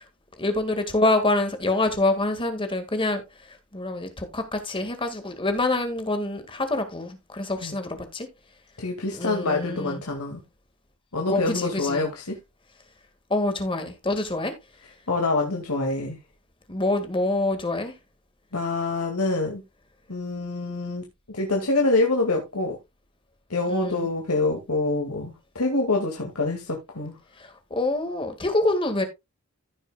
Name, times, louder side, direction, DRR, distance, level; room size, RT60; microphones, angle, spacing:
voice 1, 0.4-3.2 3.7-8.3 9.1-10.0 11.3-12.1 13.3-14.5 16.7-17.9 23.7-24.1 27.4-29.0, left 2 dB, 25° left, 1.8 m, -26 dB
voice 2, 8.8-10.4 11.1-12.4 15.1-16.2 18.5-19.6 20.1-22.8 23.5-27.2, left 2 dB, 80° left, 2.1 m, -26 dB
15.5 x 6.2 x 2.3 m
head